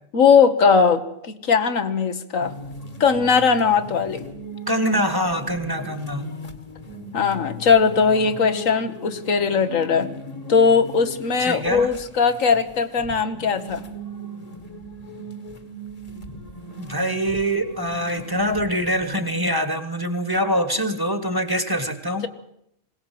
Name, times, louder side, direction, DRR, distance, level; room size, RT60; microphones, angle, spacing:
voice 1, 0.1-2.5 3.0-4.2 7.1-10.1 10.5-13.8, left 5 dB, 80° left, 8 dB, 1.7 m, -19 dB
sound 1, 2.4-19.3, equal, 30° left, 1.4 m, -38 dB
voice 2, 4.7-6.3 11.4-11.9 16.8-22.3, equal, 15° right, 9 dB, 1.5 m, -24 dB
21.0 x 18.0 x 7.7 m, 0.77 s
omnidirectional pair, 1.3 m